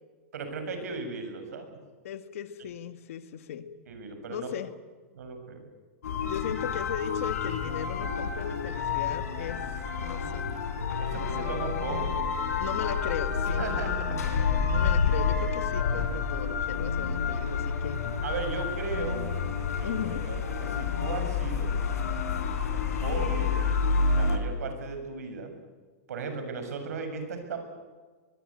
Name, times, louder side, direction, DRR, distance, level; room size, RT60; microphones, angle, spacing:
voice 1, 0.3-1.8 3.9-4.5 5.1-5.6 11.0-12.2 13.6-14.5 18.2-19.2 19.8-21.7 23.0-23.7 24.1-25.6 26.1-27.6, right 4 dB, 80° right, 7 dB, 7.1 m, -36 dB
voice 2, 2.0-3.7 4.3-4.7 6.2-9.6 10.0-10.5 11.1-11.5 12.6-13.7 14.7-18.0 19.8-20.2, left 9 dB, 60° left, 11 dB, 1.9 m, -37 dB
sound 1, 6.0-24.4, left 5 dB, 85° left, 4.4 m, -29 dB
23.0 x 22.5 x 8.9 m, 1.4 s
supercardioid pair, 165°, 8 cm